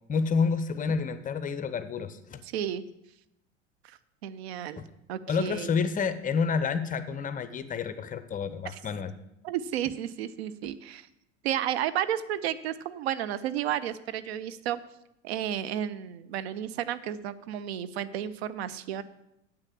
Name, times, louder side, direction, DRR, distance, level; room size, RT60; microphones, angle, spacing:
voice 1, 0.1-2.4 4.8-4.9 5.3-9.1, left 5 dB, 20° left, 12 dB, 0.6 m, -29 dB
voice 2, 2.4-2.8 4.2-4.8 5.1-5.7 9.4-11.1 11.4-14.8 15.2-19.0, right 11 dB, 60° right, 14 dB, 0.6 m, -32 dB
8.2 x 6.4 x 7.4 m, 0.84 s
figure-of-eight pair, 75°, 36 cm